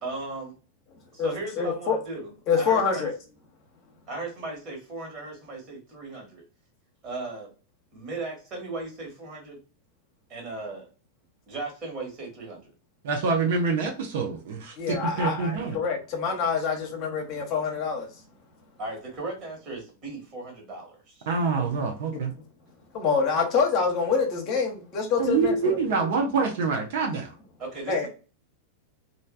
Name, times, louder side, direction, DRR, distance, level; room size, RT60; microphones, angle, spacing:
voice 1, 0.0-0.5 1.2-3.1 4.1-6.4 7.0-7.5 7.9-9.6 10.3-10.9 11.5-12.7 18.8-21.3 27.6-28.1, right 2 dB, 30° right, 1.6 m, -37 dB
voice 2, 1.6-2.0 2.5-3.1 14.8-18.1 22.1-22.2 22.9-26.0 27.9-28.1, left 5 dB, 40° left, 1.0 m, -26 dB
voice 3, 13.0-15.8 21.3-22.3 25.2-27.3, right 4 dB, 55° right, 0.7 m, -26 dB
3.2 x 2.6 x 2.4 m
figure-of-eight pair, 90°, 0 cm